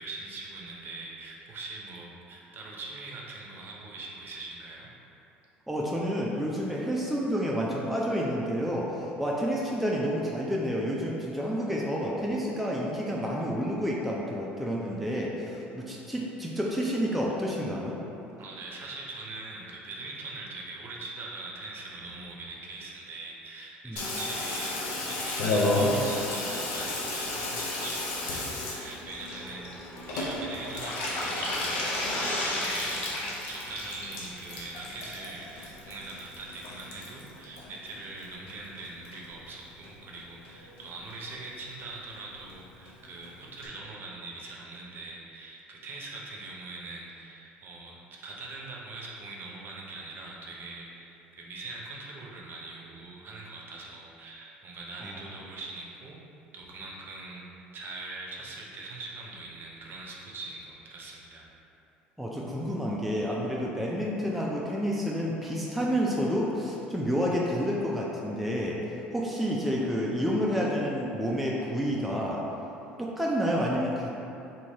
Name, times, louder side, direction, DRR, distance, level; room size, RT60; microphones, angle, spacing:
voice 1, 0.0-4.9 18.4-33.1 33.5-56.2 56.5-57.4 57.7-61.5, right 3 dB, 45° right, -3 dB, 0.6 m, -42 dB
voice 2, 5.7-18.0 23.8-24.0 55.1-55.2 62.2-72.4 73.0-74.1, equal, ahead, -4 dB, 0.4 m, -29 dB
Water tap faucet / Bathtub (filling or washing), 24.0-38.5 38.8-39.5 39.8-39.9 40.1-40.2 40.4-40.8 41.1-41.2 41.4-41.5 41.8-41.9 42.1-42.2 42.5-42.6 42.9-43.0 43.2-43.3 43.6-43.7, left 2 dB, 75° left, 0.5 m, -33 dB
sound 1, 25.6-35.1, left 1 dB, 40° left, 0.7 m, -39 dB
3.1 x 2.7 x 2.7 m, 2.9 s
hypercardioid pair, 70°, 5 cm